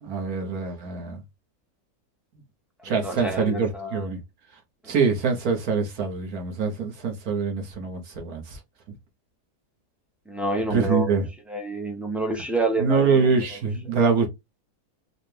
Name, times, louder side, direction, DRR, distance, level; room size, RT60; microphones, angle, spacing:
voice 1, 0.0-1.2 2.8-4.2 4.8-8.6 10.7-11.3 12.8-14.3, right 5 dB, 70° right, 1.5 m, -24 dB
voice 2, 2.8-4.0 4.8-4.9 10.3-11.1 11.5-13.3, right 2 dB, ahead, 0.4 m, -28 dB
4.7 x 2.2 x 3.2 m
omnidirectional pair, 1.7 m